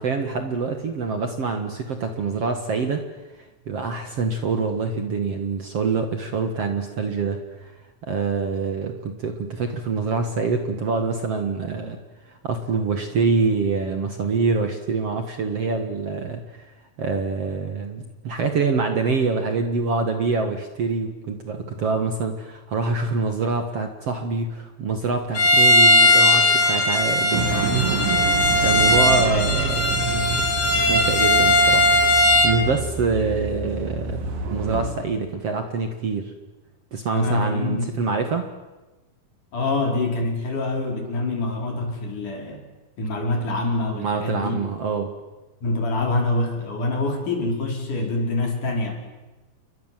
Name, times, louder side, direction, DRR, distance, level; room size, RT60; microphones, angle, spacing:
voice 1, 0.0-3.1 3.7-7.7 8.0-12.0 12.3-16.7 17.0-28.0 28.3-30.4 30.9-36.3 36.9-38.5 44.0-45.1, right 4 dB, 50° right, 6 dB, 2.4 m, -25 dB
Bowed string instrument, 25.3-32.6, left 1 dB, 25° left, 3.7 m, -18 dB
sound 1, 27.3-34.9, right 3 dB, 65° right, 4.0 m, -28 dB
voice 2, 37.1-37.9 39.5-42.6 43.0-44.6 45.6-49.0, left 2 dB, 55° left, 2 dB, 5.9 m, -25 dB
29.5 x 23.0 x 7.6 m, 1.1 s
omnidirectional pair, 4.2 m